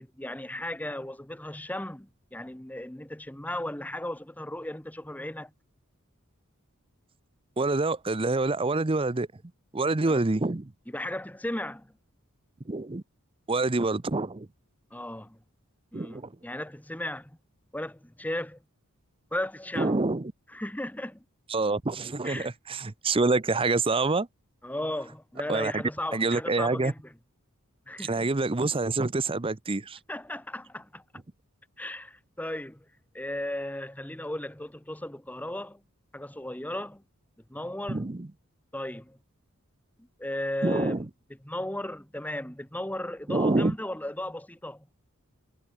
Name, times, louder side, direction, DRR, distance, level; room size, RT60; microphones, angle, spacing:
voice 1, 0.0-5.5 10.0-10.2 10.9-11.9 14.9-15.4 15.9-17.4 17.7-18.6 19.3-20.0 20.5-21.2 22.2-22.5 24.6-27.1 27.9-28.3 30.1-31.0 31.8-32.8 33.1-35.8 36.1-37.0 37.5-38.1 38.7-39.2 40.0-41.0 41.4-44.9, left 1 dB, 5° left, 1.2 m, -36 dB
voice 2, 7.6-9.3 9.7-10.7 12.7-13.0 13.5-14.5 15.9-16.3 19.8-20.3 21.5-24.3 25.5-25.8 26.1-26.9 28.0-30.0 37.9-38.3 40.6-41.1 43.3-43.7, right 3 dB, 25° right, 0.7 m, -26 dB
head